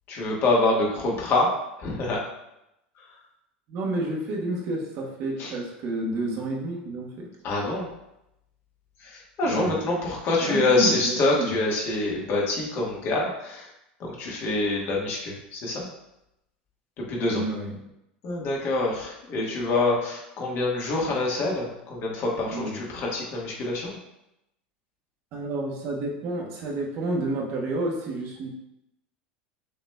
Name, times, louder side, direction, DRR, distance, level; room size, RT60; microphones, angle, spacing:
voice 1, 0.1-1.5 1.8-2.2 5.4-5.5 7.4-7.9 9.0-13.7 14.0-15.9 17.0-17.4 18.2-24.0, left 2 dB, 45° left, -2 dB, 1.3 m, -26 dB
voice 2, 3.7-7.3 9.5-9.7 10.4-11.5 17.3-17.7 22.5-22.8 25.3-28.5, right 2 dB, 50° right, -1 dB, 1.2 m, -30 dB
6.5 x 3.1 x 2.2 m, 0.86 s
hypercardioid pair, 85°, 6 cm